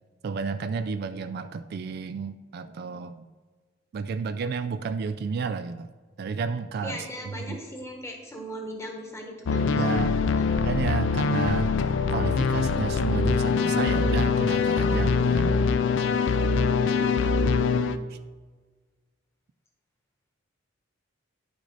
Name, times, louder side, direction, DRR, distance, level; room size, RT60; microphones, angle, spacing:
voice 1, 0.2-3.3 3.9-5.9 6.2-7.6 9.7-10.2 10.6-11.7 12.1-15.6 18.1-18.2, right 5 dB, 55° right, 10 dB, 0.3 m, -31 dB
voice 2, 6.8-10.5, equal, 15° left, 1 dB, 1.3 m, -39 dB
sound 1, 9.5-18.0, left 4 dB, 70° left, 0.4 m, -23 dB
9.8 x 6.2 x 4.0 m, 1.4 s
head